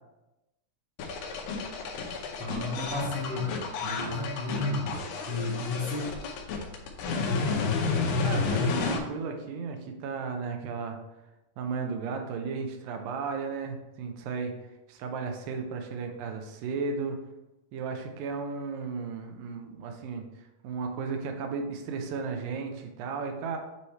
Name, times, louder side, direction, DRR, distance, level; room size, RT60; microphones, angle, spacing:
sound 1, 1.0-9.0, left 4 dB, 85° left, 2.6 m, -31 dB
voice 1, 2.1-6.0, left 2 dB, 55° right, -6 dB, 1.7 m, -33 dB
voice 2, 8.2-11.0 11.6-14.5 14.9-17.2 17.7-23.6, right 5 dB, 85° right, 4 dB, 2.4 m, -34 dB
8.3 x 3.2 x 4.4 m, 0.98 s
omnidirectional pair, 4.0 m